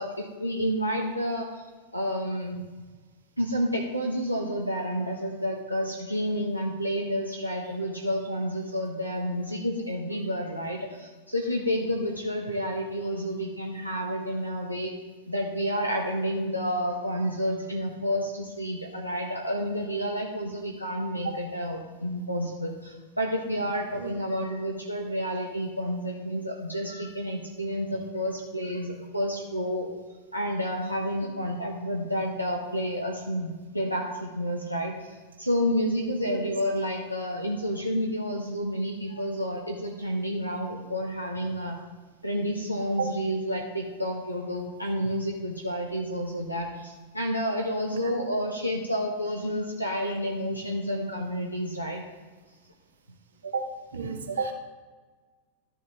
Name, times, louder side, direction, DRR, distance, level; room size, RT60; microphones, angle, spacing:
voice 1, 0.0-1.6 1.9-2.6 3.4-14.9 15.3-29.9 30.3-41.8 42.2-52.0, equal, 90° right, -1 dB, 1.0 m, -30 dB
voice 2, 53.9-54.5, right 5 dB, 70° right, 4 dB, 1.3 m, -31 dB
12.0 x 7.0 x 3.7 m, 1.3 s
figure-of-eight pair, 90°, 0 cm